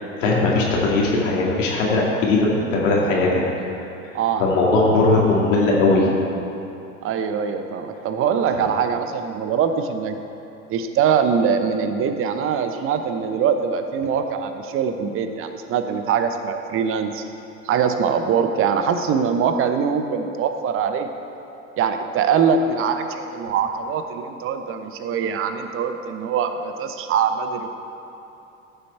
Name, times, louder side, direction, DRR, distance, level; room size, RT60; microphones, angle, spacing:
voice 1, 0.0-3.4 4.4-6.1, left 2 dB, 65° left, -3 dB, 2.5 m, -19 dB
voice 2, 4.1-4.5 7.0-10.2 10.7-17.2 17.6-21.1 21.8-27.7, right 6 dB, 30° right, 8 dB, 0.8 m, -23 dB
14.0 x 7.2 x 4.5 m, 2.9 s
figure-of-eight pair, 80°, 41 cm